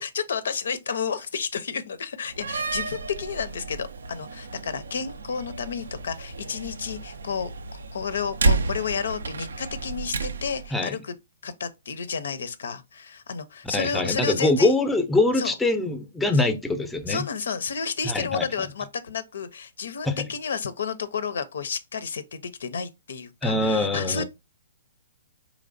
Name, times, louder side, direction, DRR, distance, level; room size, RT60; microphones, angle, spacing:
voice 1, 0.0-11.2 11.4-14.7 15.4-15.5 16.3-16.5 17.1-24.2, left 6 dB, 75° left, 0.5 m, -31 dB
Slam, 2.3-10.7, right 3 dB, 80° right, 0.4 m, -31 dB
voice 2, 13.7-17.2 18.0-18.5 20.1-20.3 23.4-24.2, left 2 dB, 5° left, 0.5 m, -23 dB
3.9 x 3.1 x 2.5 m
hypercardioid pair, 135°, 0 cm